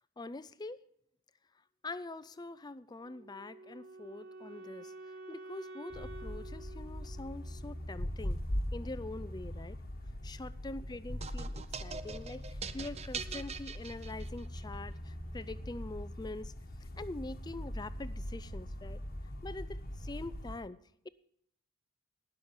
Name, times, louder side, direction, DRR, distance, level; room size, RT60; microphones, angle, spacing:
voice 1, 0.2-0.8 1.8-4.9 5.3-8.4 8.7-9.8 10.2-16.5 17.0-19.0 19.4-20.8 21.0-21.1, left 2 dB, 20° left, 16 dB, 0.4 m, -44 dB
Wind instrument woodwind instrument, 3.0-8.1, right 2 dB, 65° right, 1.6 m, -50 dB
sound 1, 5.9-20.6, equal, 45° left, 1.2 m, -41 dB
sound 2, 11.2-14.6, right 6 dB, 30° right, 0.5 m, -43 dB
18.5 x 6.3 x 7.1 m, 0.71 s
head